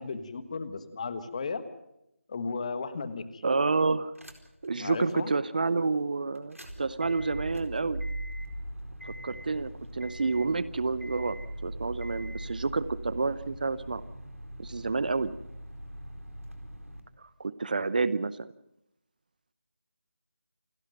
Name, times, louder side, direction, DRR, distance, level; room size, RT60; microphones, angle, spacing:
voice 1, 0.0-1.6 2.3-3.4 4.8-5.4, left 4 dB, 30° left, 13 dB, 1.4 m, -35 dB
voice 2, 3.4-4.1 4.6-8.0 9.0-14.0 14.6-15.3 17.2-18.5, right 4 dB, 35° right, 17 dB, 0.7 m, -29 dB
sound 1, 4.2-4.7 5.1-5.2 6.4-17.0, right 1 dB, 85° right, 4.3 m, -40 dB
28.5 x 11.5 x 9.1 m, 0.83 s
figure-of-eight pair, 160°, 7 cm